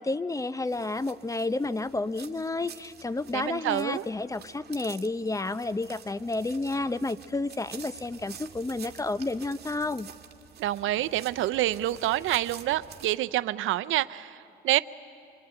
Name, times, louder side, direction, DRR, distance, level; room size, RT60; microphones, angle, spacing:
voice 1, 0.0-10.1, left 2 dB, 15° left, 15 dB, 0.7 m, -31 dB
sound 1, 0.7-13.1, right 8 dB, 55° right, 1.7 m, -49 dB
voice 2, 3.3-4.0 10.6-14.8, right 14 dB, 85° right, 13 dB, 0.6 m, -27 dB
26.0 x 23.5 x 8.9 m, 2.5 s
cardioid pair, 90°, 20 cm